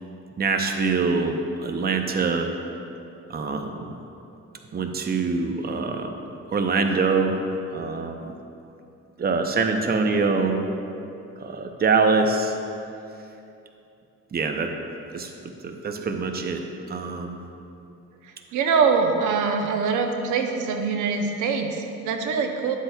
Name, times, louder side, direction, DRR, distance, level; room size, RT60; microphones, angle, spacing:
voice 1, 0.4-2.5 3.3-4.0 4.7-6.1 6.5-7.4 7.7-8.3 9.2-10.6 11.4-12.5 14.3-14.7 15.1-17.4, right 4 dB, 30° right, 5 dB, 0.7 m, -24 dB
voice 2, 18.5-22.8, right 5 dB, 85° right, 4 dB, 0.7 m, -23 dB
11.0 x 7.9 x 2.3 m, 2.7 s
cardioid pair, 90°, 30 cm